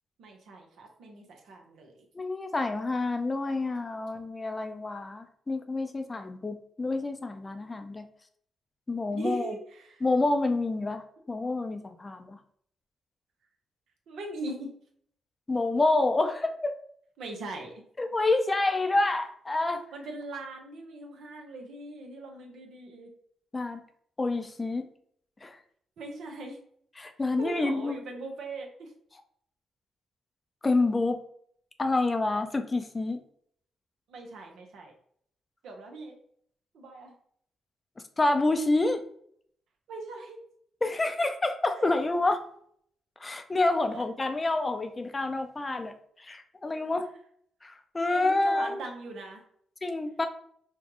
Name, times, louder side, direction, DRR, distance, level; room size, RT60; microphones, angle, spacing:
voice 1, 0.2-2.0 9.1-10.0 14.1-14.7 17.2-17.8 19.9-23.1 26.0-26.6 27.4-28.9 34.1-34.9 35.6-36.2 36.7-37.1 39.9-40.4 41.8-41.9 43.7-44.3 48.1-49.4, right 2 dB, 70° right, 2 dB, 0.8 m, -40 dB
voice 2, 2.1-8.1 8.9-9.5 10.0-12.4 15.5-16.8 18.0-19.9 23.5-23.8 24.2-24.9 25.4-25.6 27.0-28.0 30.6-31.2 31.8-33.2 38.2-39.0 40.8-42.5 43.2-47.1 47.6-48.8 49.8-50.3, left 2 dB, 30° left, 7 dB, 0.5 m, -28 dB
4.4 x 2.3 x 2.9 m, 0.64 s
supercardioid pair, 50°, 0 cm